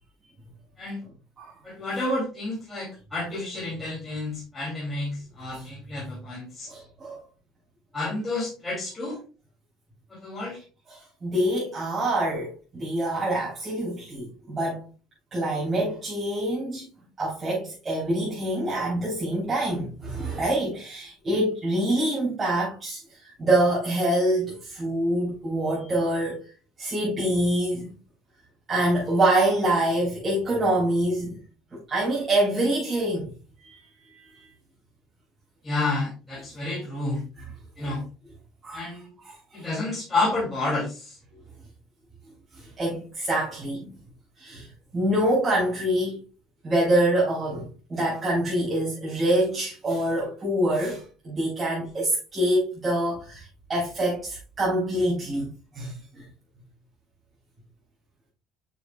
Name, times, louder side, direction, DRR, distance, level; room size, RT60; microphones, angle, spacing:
voice 1, 1.6-6.7 7.9-9.2 10.1-10.6 35.6-37.2 37.8-38.0 38.7-39.1 39.5-41.1, left 2 dB, 10° left, 2.9 m, -30 dB
voice 2, 6.7-7.2 10.9-14.8 15.3-16.8 17.2-26.4 26.8-27.9 28.7-31.4 31.9-33.3 33.6-33.8 34.1-34.3 37.8-37.9 38.6-38.9 39.2-39.7 42.6-43.9 44.4-44.7 44.9-46.2 46.6-55.5 55.7-56.2, right 1 dB, 20° right, 3.7 m, -25 dB
7.5 x 6.3 x 2.3 m
cardioid pair, 145°, 0 cm